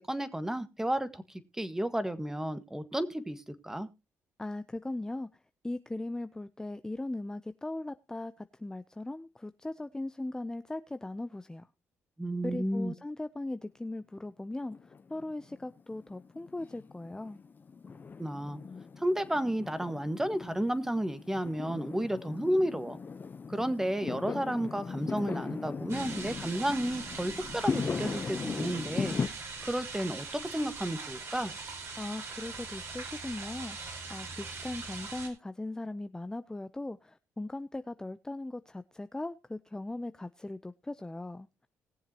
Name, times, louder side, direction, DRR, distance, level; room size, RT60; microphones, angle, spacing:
voice 1, 0.1-3.9 12.2-12.9 18.2-18.6 19.0-23.0 23.5-29.2 29.6-31.5, right 1 dB, 10° right, 1.6 m, -32 dB
voice 2, 4.4-11.7 12.4-17.4 32.0-41.5, left 2 dB, 10° left, 0.6 m, -39 dB
Fireworks, 14.7-29.3, left 5 dB, 40° left, 0.9 m, -38 dB
sound 1, 25.9-35.3, right 4 dB, 60° right, 4.5 m, -41 dB
20.0 x 7.3 x 3.0 m
supercardioid pair, 65°, 5 cm